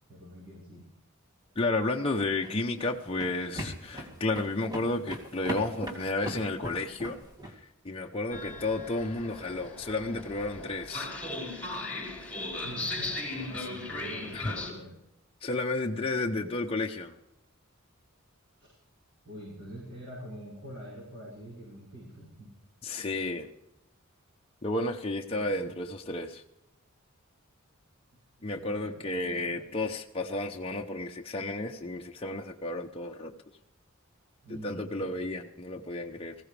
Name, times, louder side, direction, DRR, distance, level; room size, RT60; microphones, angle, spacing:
voice 1, 0.1-0.8 12.5-15.0 18.6-18.8 19.2-22.5 25.3-25.7 28.4-29.6 34.4-35.1, right 1 dB, 55° right, -7 dB, 6.2 m, -45 dB
voice 2, 1.6-7.2 7.6-11.1 13.6-13.7 14.3-14.5 15.4-17.2 22.8-23.5 24.6-26.4 28.4-33.3 34.5-36.3, left 2 dB, 25° left, 1 dB, 0.8 m, -32 dB
sound 1, 1.9-7.5, equal, 20° right, 2.4 m, -39 dB
Train, 8.3-14.7, left 2 dB, 5° left, 5.0 m, -37 dB
20.0 x 16.0 x 3.4 m, 0.88 s
head